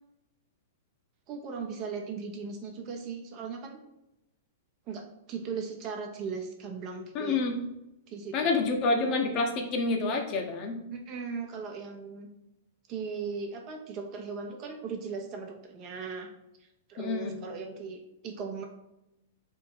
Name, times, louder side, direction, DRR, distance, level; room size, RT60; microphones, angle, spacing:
voice 1, 1.3-3.8 4.9-7.4 8.1-8.5 10.9-12.3 12.9-16.3 16.9-18.6, right 5 dB, 40° right, 3 dB, 0.9 m, -38 dB
voice 2, 7.1-7.6 8.3-10.8 17.0-17.4, left 3 dB, 40° left, 3 dB, 0.8 m, -28 dB
3.6 x 3.0 x 4.6 m, 0.88 s
figure-of-eight pair, 105°, 0 cm